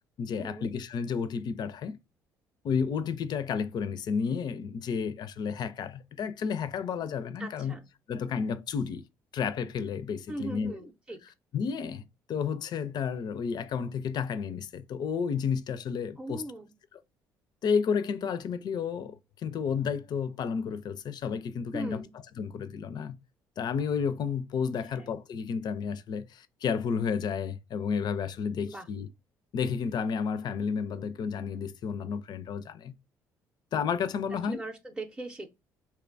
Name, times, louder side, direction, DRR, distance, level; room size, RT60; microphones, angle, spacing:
voice 1, 0.2-2.0 2.6-7.8 8.1-9.0 9.3-10.8 11.5-16.4 17.6-22.0 22.3-23.2 23.6-29.1 29.5-33.0 33.7-34.6, left 6 dB, 50° left, 0.4 m, -31 dB
voice 2, 7.4-7.8 10.3-11.2 16.2-16.7 21.7-22.2 24.9-25.0 28.6-28.9 34.3-35.5, right 2 dB, 10° right, 0.5 m, -40 dB
2.8 x 2.2 x 2.5 m
hypercardioid pair, 60°, 9 cm